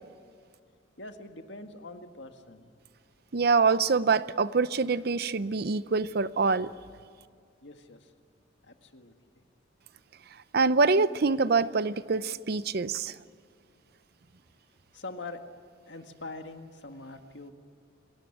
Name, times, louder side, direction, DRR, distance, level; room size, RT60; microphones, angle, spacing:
voice 1, 1.0-2.7 7.6-8.1 8.6-9.4 14.9-15.4 15.9-17.5, left 2 dB, 70° left, 6 dB, 1.8 m, -44 dB
voice 2, 3.3-6.7 10.5-13.1, right 4 dB, 55° right, 16 dB, 0.6 m, -25 dB
26.0 x 17.5 x 9.9 m, 2.2 s
head